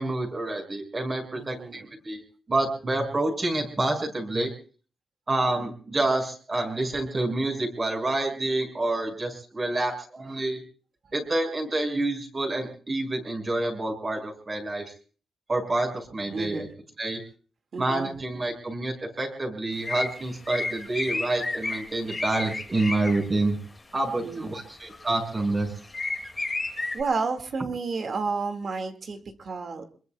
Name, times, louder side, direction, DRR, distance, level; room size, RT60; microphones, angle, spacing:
voice 1, 0.0-2.2 2.5-4.5 5.3-10.6 11.1-14.8 15.5-16.7 17.0-17.2 17.8-23.6 23.9-25.7, right 2 dB, 30° right, 3 dB, 6.1 m, -28 dB
voice 2, 1.3-1.9 10.3-10.4 16.3-16.7 17.7-18.1 24.2-24.5 26.9-29.9, right 4 dB, 50° right, 7 dB, 2.1 m, -31 dB
sound 1, 19.8-23.2 24.7-25.5 25.8-27.0, left 2 dB, 20° left, 2.2 m, -31 dB
27.0 x 22.0 x 2.3 m, 0.39 s
cardioid pair, 115°, 0 cm